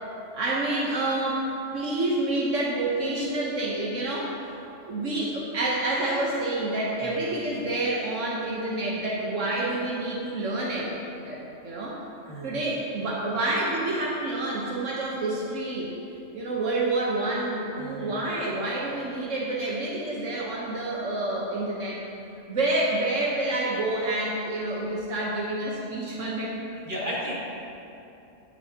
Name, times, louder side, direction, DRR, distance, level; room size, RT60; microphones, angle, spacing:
voice 1, 0.3-1.5 1.7-4.4 4.8-10.9 11.2-12.0 12.4-15.9 16.3-22.0 22.5-26.5, right 2 dB, 80° right, -4 dB, 1.5 m, -28 dB
voice 2, 17.8-18.1 26.8-27.4, equal, 40° right, -6 dB, 2.3 m, -34 dB
17.5 x 6.9 x 2.9 m, 2.8 s
omnidirectional pair, 1.3 m